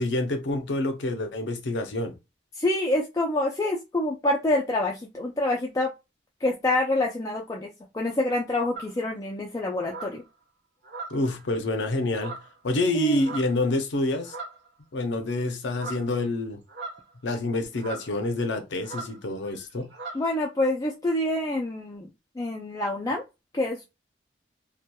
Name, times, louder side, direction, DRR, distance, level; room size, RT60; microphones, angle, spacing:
voice 1, 0.0-2.1 11.1-12.4 12.6-14.4 14.9-16.6 17.2-19.9, left 2 dB, 80° left, 0.6 m, -27 dB
voice 2, 2.6-5.9 6.4-7.7 7.9-10.2 12.9-13.2 20.1-22.1 22.4-23.2 23.5-23.9, left 1 dB, 20° left, 0.3 m, -26 dB
sound 1, 8.7-9.0 9.8-10.2 10.8-11.4 12.1-12.6 13.2-13.6 14.2-14.7 15.7-16.1 16.7-17.3 17.7-18.1 18.8-19.2 19.4-19.6 19.9-20.3, right 3 dB, 70° right, 0.7 m, -39 dB
2.8 x 2.2 x 2.2 m
head